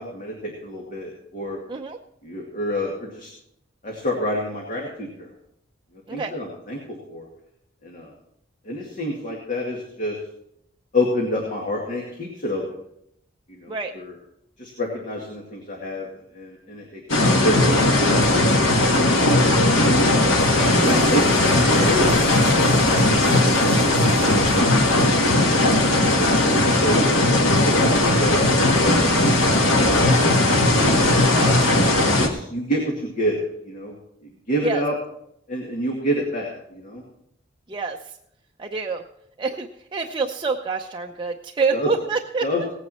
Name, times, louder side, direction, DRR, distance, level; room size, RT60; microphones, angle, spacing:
voice 1, 0.0-1.6 2.2-3.3 3.8-5.3 6.1-6.8 7.1-7.3 7.8-8.1 8.7-10.2 10.9-12.6 13.5-14.1 14.6-16.1 16.3-18.4 19.0-20.0 20.8-22.2 23.1-24.6 25.4-25.8 26.1-29.1 29.7-30.3 31.9-33.9 34.2-35.0 35.5-37.0 41.7-41.9 42.4-42.6, equal, 40° left, -1 dB, 2.2 m, -28 dB
sound 1, 17.1-32.3, left 1 dB, 85° left, 1.9 m, -18 dB
sound 2, 20.2-25.8, right 1 dB, 10° right, 6.3 m, -37 dB
voice 2, 31.3-31.7 34.6-34.8 37.7-38.0 38.6-39.0 39.4-42.7, right 4 dB, 25° right, 2 dB, 0.6 m, -27 dB
17.5 x 9.3 x 4.3 m, 0.75 s
head